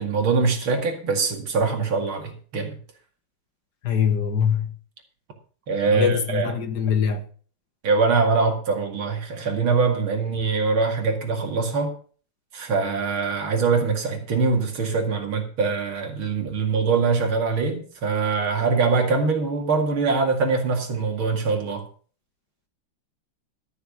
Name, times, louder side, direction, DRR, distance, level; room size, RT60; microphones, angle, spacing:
voice 1, 0.0-2.8 5.7-6.5 7.8-11.9 12.5-21.8, right 4 dB, 75° right, 3.0 m, -23 dB
voice 2, 3.8-4.8 5.9-7.3, left 7 dB, 55° left, 1.7 m, -23 dB
13.0 x 6.9 x 6.6 m
omnidirectional pair, 2.3 m